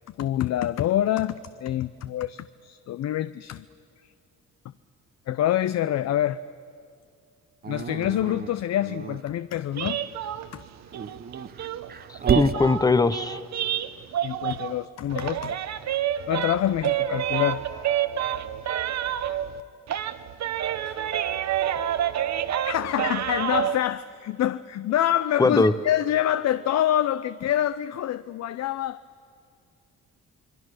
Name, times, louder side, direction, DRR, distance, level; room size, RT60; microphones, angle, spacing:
voice 1, 0.2-3.6 5.3-6.4 7.7-10.0 10.5-10.6 14.2-15.7 16.3-17.6 20.8-21.0 22.6-29.0, left 12 dB, 60° left, 14 dB, 0.6 m, -26 dB
Dog, 7.6-9.2 10.8-12.6, right 7 dB, 30° right, 0.7 m, -29 dB
sound 1, 9.7-14.8 15.1-19.6 19.9-23.8, right 10 dB, 60° right, 1.0 m, -28 dB
voice 2, 12.1-13.4 25.4-25.7, left 3 dB, 10° left, 14 dB, 0.7 m, -21 dB
27.5 x 22.0 x 6.4 m, 2.3 s
cardioid pair, 90°, 30 cm